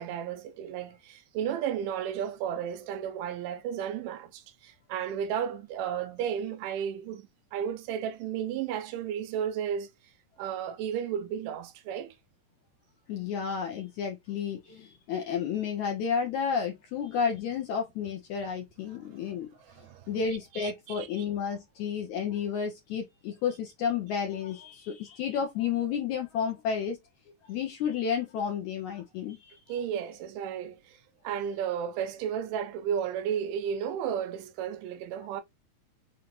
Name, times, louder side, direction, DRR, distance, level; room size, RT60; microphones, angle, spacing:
voice 1, 0.0-9.9 10.4-12.1 19.6-20.1 20.5-21.3 29.7-31.0 31.2-35.4, right 8 dB, 80° right, 2.2 m, -33 dB
voice 2, 13.1-19.8 20.1-27.0 27.4-29.6, left 7 dB, 75° left, 1.8 m, -31 dB
5.8 x 2.4 x 3.0 m
omnidirectional pair, 3.9 m